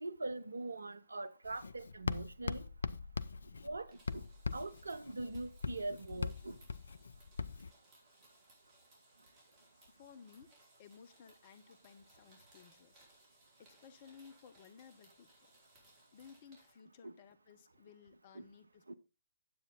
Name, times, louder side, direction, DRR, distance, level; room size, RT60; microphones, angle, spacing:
voice 1, 0.0-2.6 3.6-4.2 4.5-6.6 17.0-17.1 18.3-18.4 18.9-19.0, right 2 dB, 75° right, 0.8 m, -42 dB
Writing, 1.4-7.7, left 4 dB, 70° left, 0.5 m, -41 dB
sound 1, 3.8-16.7, right 1 dB, 30° right, 4.6 m, -67 dB
voice 2, 9.9-10.5 10.8-13.1 13.6-15.3 16.1-19.0, left 6 dB, 40° left, 1.1 m, -58 dB
9.8 x 8.1 x 3.7 m
figure-of-eight pair, 125°, 0 cm